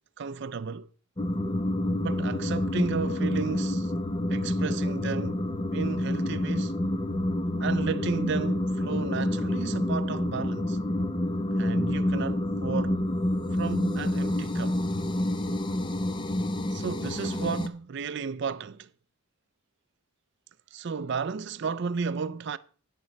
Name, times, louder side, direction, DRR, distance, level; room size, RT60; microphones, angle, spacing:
voice 1, 0.2-0.9 2.0-3.9 4.3-5.4 5.7-6.8 7.6-10.8 11.6-13.0 13.5-14.8 16.7-18.9 20.7-22.6, right 5 dB, 55° right, 0.4 m, -33 dB
sound 1, 1.2-17.7, left 1 dB, 20° left, 0.5 m, -28 dB
9.7 x 9.1 x 4.0 m
head